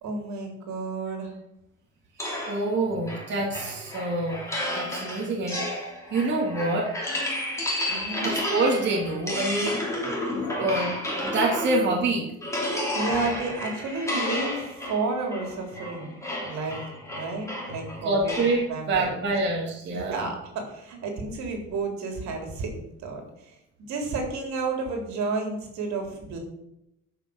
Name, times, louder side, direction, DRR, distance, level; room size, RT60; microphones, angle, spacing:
voice 1, 0.0-1.3 7.9-8.3 12.9-16.2 16.4-16.8 17.1-18.3 18.7-19.2 19.9-23.5 23.9-26.4, right 3 dB, 70° right, 2 dB, 3.8 m, -31 dB
sound 1, 2.2-12.0 12.4-18.6, left 1 dB, 10° left, 3.1 m, -32 dB
voice 2, 2.5-4.4 4.7-5.8 6.1-6.9 8.2-9.8 10.3-10.9 11.2-12.3 18.0-18.6 18.9-20.3, right 2 dB, 40° right, -3 dB, 2.7 m, -26 dB
13.0 x 6.2 x 6.5 m, 0.83 s
cardioid pair, 165°, 29 cm